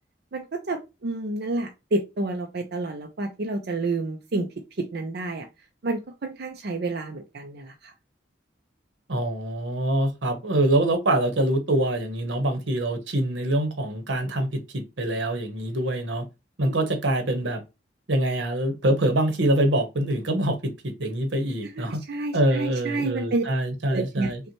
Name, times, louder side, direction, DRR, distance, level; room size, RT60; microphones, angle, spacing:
voice 1, 0.3-4.5 4.8-5.5 5.8-7.9 16.7-16.8 21.6-23.4 23.9-24.3, right 2 dB, 60° right, 0.5 m, -29 dB
voice 2, 9.1-16.2 16.6-17.6 18.1-22.0 22.3-24.4, right 1 dB, 85° right, 1.0 m, -25 dB
5.5 x 2.2 x 2.9 m
head